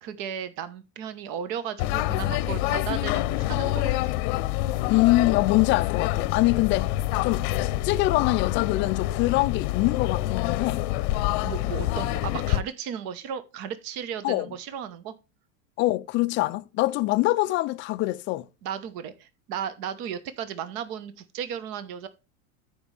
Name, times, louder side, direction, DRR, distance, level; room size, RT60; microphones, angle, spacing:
voice 1, 0.0-4.1 11.4-15.1 18.6-22.1, right 8 dB, 50° right, 1.1 m, -35 dB
sound 1, 1.8-12.6, left 15 dB, 55° left, 0.7 m, -27 dB
voice 2, 4.9-6.9 7.2-10.8 14.2-14.5 15.8-18.5, left 19 dB, 30° left, 0.3 m, -24 dB
13.5 x 5.3 x 3.3 m
supercardioid pair, 135°, 44 cm